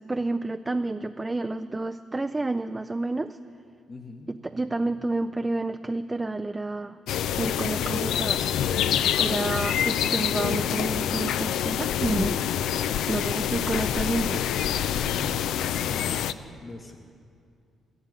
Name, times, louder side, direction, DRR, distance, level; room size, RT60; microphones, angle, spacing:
voice 1, 0.0-3.4 4.3-7.0 7.4-8.5 9.2-12.4 13.1-14.4 14.7-14.9, right 2 dB, 20° right, 9 dB, 0.4 m, -29 dB
voice 2, 3.9-4.4 15.0-15.5 15.8-17.0, left 3 dB, 40° left, 1 dB, 1.1 m, -42 dB
sound 1, 7.1-16.3, left 10 dB, 80° left, 0.4 m, -26 dB
13.5 x 11.0 x 8.8 m, 2.5 s
cardioid pair, 90°, 0 cm